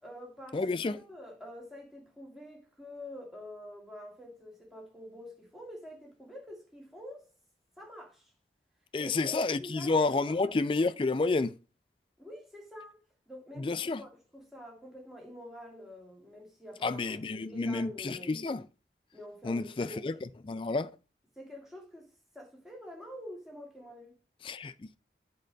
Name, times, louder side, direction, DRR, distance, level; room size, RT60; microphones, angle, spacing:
voice 1, 0.0-7.3 7.8-8.3 9.0-9.9 10.3-10.4 12.2-13.0 13.3-18.4 19.1-20.2 21.4-22.1 22.3-24.1, left 1 dB, ahead, 2.1 m, -47 dB
voice 2, 0.5-1.0 8.9-11.6 13.6-14.0 16.8-18.7 19.4-20.1 20.4-20.9 24.4-24.7, left 3 dB, 30° left, 0.3 m, -30 dB
8.5 x 3.8 x 5.1 m
head